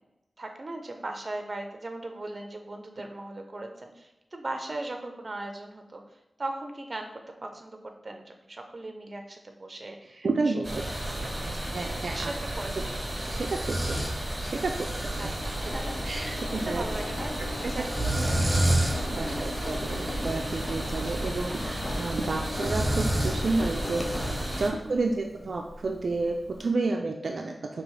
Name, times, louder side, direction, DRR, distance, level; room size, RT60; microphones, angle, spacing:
voice 1, 0.4-6.0 6.4-10.9 11.2-12.7 15.2-18.0 19.2-19.6 24.9-25.1, right 2 dB, 45° right, 4 dB, 0.7 m, -39 dB
voice 2, 10.2-11.0 11.7-12.3 12.8-12.9 13.3-14.1 14.4-15.3 16.1-16.3 16.5-16.8 17.6-17.7 18.2-24.1 24.6-27.8, right 3 dB, 75° right, 1 dB, 0.4 m, -31 dB
sound 1, 10.6-24.7, right 1 dB, 20° right, 1.3 m, -30 dB
Engine, 14.9-26.6, left 2 dB, 40° left, 0.5 m, -38 dB
5.2 x 2.9 x 3.2 m, 0.95 s
wide cardioid pair, 70°, 0 cm